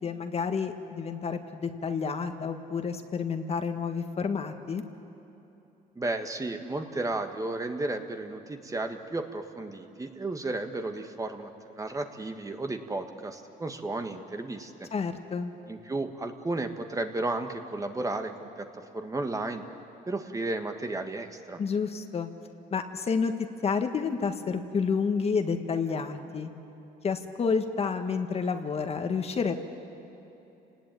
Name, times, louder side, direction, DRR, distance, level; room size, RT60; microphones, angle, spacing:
voice 1, 0.0-4.8 14.9-15.5 21.6-22.3 22.7-23.3 23.6-26.5 27.0-29.6, left 5 dB, 35° left, 6 dB, 1.7 m, -29 dB
voice 2, 5.9-14.9 15.7-19.6 20.1-21.6, right 2 dB, 20° right, 6 dB, 1.5 m, -33 dB
29.5 x 19.0 x 9.2 m, 3.0 s
cardioid pair, 110°, 17 cm